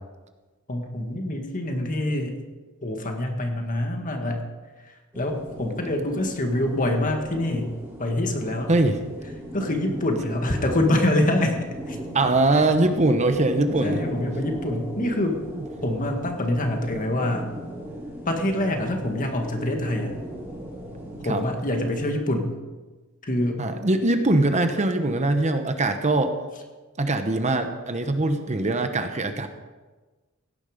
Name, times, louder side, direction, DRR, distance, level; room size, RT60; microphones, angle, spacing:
voice 1, 0.7-2.4 2.8-4.5 4.8-7.7 8.0-8.7 9.5-11.6 11.9-12.0 12.5-12.6 13.8-15.4 15.8-17.5 18.3-20.2 21.2-22.6 23.2-23.7, left 1 dB, 40° left, 3 dB, 1.9 m, -25 dB
sound 1, 5.1-22.1, equal, 10° right, 3.1 m, -37 dB
voice 2, 12.1-14.0 21.3-21.4 23.6-26.3 27.0-29.5, right 2 dB, 35° right, 7 dB, 0.9 m, -22 dB
16.5 x 10.5 x 5.1 m, 1.3 s
head